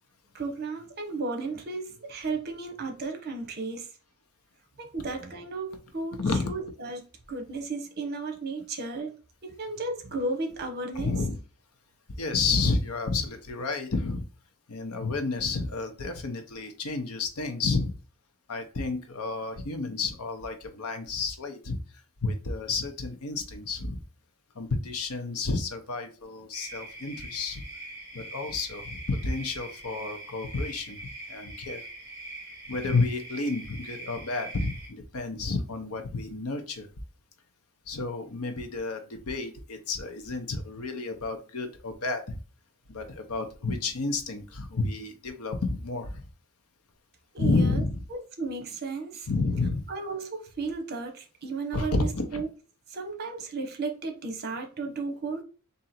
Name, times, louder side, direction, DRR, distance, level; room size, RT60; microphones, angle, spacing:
voice 1, 0.3-3.9 4.8-9.1 9.4-11.2 47.3-47.8 48.1-49.3 49.9-52.5 52.9-55.4, right 3 dB, 45° right, 0.9 m, -34 dB
voice 2, 6.2-6.5 11.0-11.4 12.2-14.2 14.7-17.9 18.5-21.8 22.2-24.0 24.6-27.6 28.1-31.0 31.3-31.8 32.7-36.9 37.9-42.4 42.9-46.2 47.4-48.0 49.3-49.8 51.7-52.4, left 3 dB, 75° left, 0.8 m, -30 dB
sound 1, 26.5-34.9, right 2 dB, 10° right, 2.1 m, -43 dB
3.8 x 2.7 x 4.2 m
head